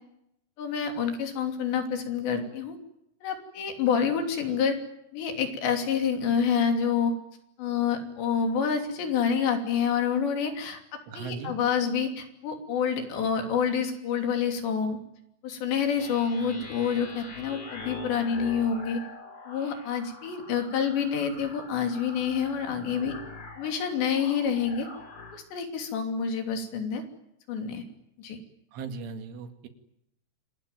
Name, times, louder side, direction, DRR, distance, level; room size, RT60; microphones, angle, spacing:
voice 1, 0.6-2.8 3.2-4.8 5.1-7.1 7.6-15.0 15.4-19.0 19.5-23.1 23.6-24.9 25.3-27.0 27.5-27.8 28.2-28.4, left 7 dB, 65° left, 5 dB, 5.1 m, -28 dB
voice 2, 11.1-11.5 28.7-29.7, right 5 dB, 80° right, 7 dB, 4.5 m, -38 dB
sound 1, 15.9-25.4, left 3 dB, 35° left, 4.6 m, -44 dB
27.0 x 19.5 x 9.3 m, 0.81 s
omnidirectional pair, 5.5 m